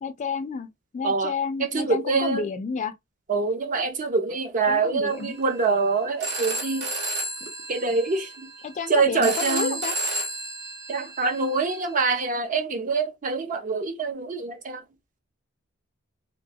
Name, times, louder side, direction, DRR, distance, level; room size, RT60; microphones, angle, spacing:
voice 1, 0.0-0.7 0.9-2.9 4.6-5.3 8.6-9.9, left 5 dB, 35° left, 0.3 m, -30 dB
voice 2, 1.6-2.5 3.3-7.0 7.7-8.5 8.9-9.8 10.9-14.8, right 4 dB, 40° right, 0.5 m, -25 dB
Telephone, 5.1-12.0, right 1 dB, 60° right, 0.8 m, -33 dB
2.2 x 2.2 x 2.6 m
head